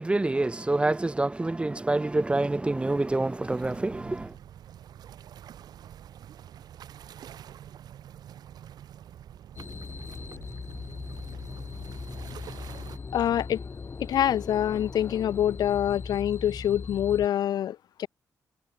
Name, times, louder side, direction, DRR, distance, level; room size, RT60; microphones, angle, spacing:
voice 1, 0.0-4.3, right 2 dB, 15° right, 1.0 m, -27 dB
sound 1, 3.1-13.0, right 10 dB, 75° right, 6.9 m, -47 dB
sound 2, 9.6-17.3, left 4 dB, 35° left, 5.1 m, -39 dB
voice 2, 13.1-13.6 14.0-18.1, left 10 dB, 75° left, 1.6 m, -26 dB
cardioid pair, 100°, 7 cm